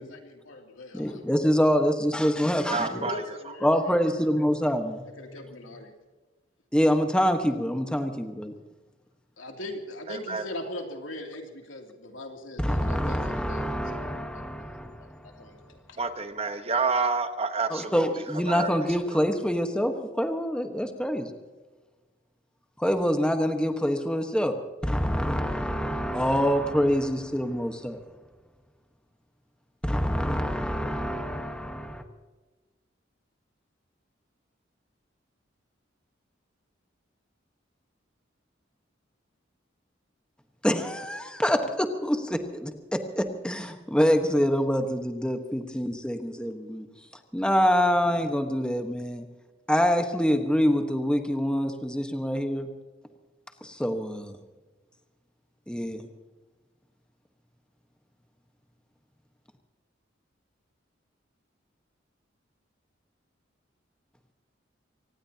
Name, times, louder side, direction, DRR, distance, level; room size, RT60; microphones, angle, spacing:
voice 1, 0.0-1.2 2.5-4.2 5.2-5.9 9.4-14.0 14.3-16.0, left 1 dB, 90° left, 2 dB, 2.9 m, -41 dB
voice 2, 0.9-3.0 3.6-5.0 6.7-8.5 12.6-15.3 17.7-21.3 22.8-28.0 29.8-32.0 40.6-46.9 47.3-49.2 49.7-52.7 53.6-54.4 55.7-56.1, equal, 5° left, 5 dB, 1.3 m, -26 dB
voice 3, 2.7-3.4 3.7-3.8 10.1-10.4 16.0-18.7 19.1-19.3, right 4 dB, 30° right, 8 dB, 1.1 m, -29 dB
25.0 x 19.0 x 2.9 m, 1.3 s
head